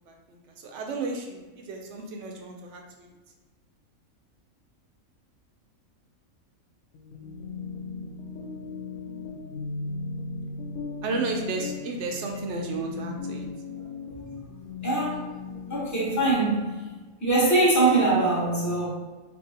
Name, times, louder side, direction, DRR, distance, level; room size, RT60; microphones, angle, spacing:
voice 1, 0.1-3.1 11.0-13.5, right 3 dB, 65° right, 1 dB, 0.8 m, -33 dB
sound 1, 6.9-16.9, left 4 dB, 85° left, 1.0 m, -37 dB
voice 2, 14.8-15.2 15.7-16.7 17.2-18.9, right 2 dB, 15° left, -4 dB, 0.6 m, -22 dB
2.7 x 2.6 x 4.1 m, 1.3 s
omnidirectional pair, 1.5 m